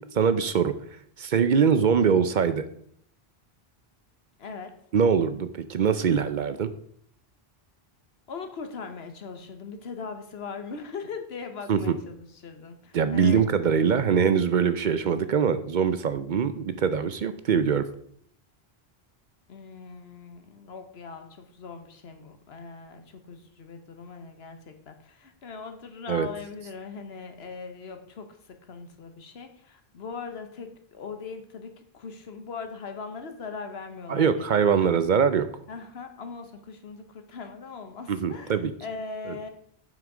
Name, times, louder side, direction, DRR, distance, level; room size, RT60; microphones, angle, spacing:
voice 1, 0.1-0.7 1.2-2.7 4.9-6.7 11.7-11.9 12.9-17.8 26.1-26.3 34.1-35.5 38.1-38.7 39.3-39.4, right 7 dB, 55° right, 12 dB, 0.6 m, -23 dB
voice 2, 4.4-4.7 8.3-12.1 12.4-13.4 19.5-35.0 35.7-39.5, left 5 dB, 80° left, 7 dB, 1.3 m, -40 dB
7.8 x 5.7 x 4.9 m, 0.65 s
omnidirectional pair, 1.0 m